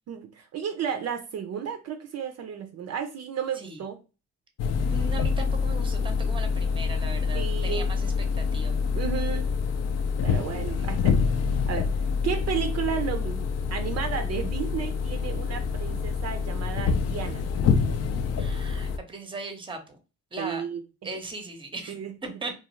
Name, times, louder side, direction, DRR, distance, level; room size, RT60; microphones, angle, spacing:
voice 1, 0.1-4.0 7.3-7.9 8.9-9.5 10.2-11.2 11.7-11.9 12.2-17.4 20.4-20.8 21.9-22.1, right 7 dB, 55° right, 6 dB, 0.5 m, -33 dB
sound 1, 4.6-19.0, left 5 dB, 55° left, 0.5 m, -26 dB
voice 2, 4.9-8.8 10.7-10.9 18.4-20.0 20.3-20.6 21.0-22.0 22.2-22.5, right 3 dB, 15° right, 5 dB, 0.7 m, -38 dB
2.4 x 2.3 x 3.0 m, 0.31 s
cardioid pair, 90°, 30 cm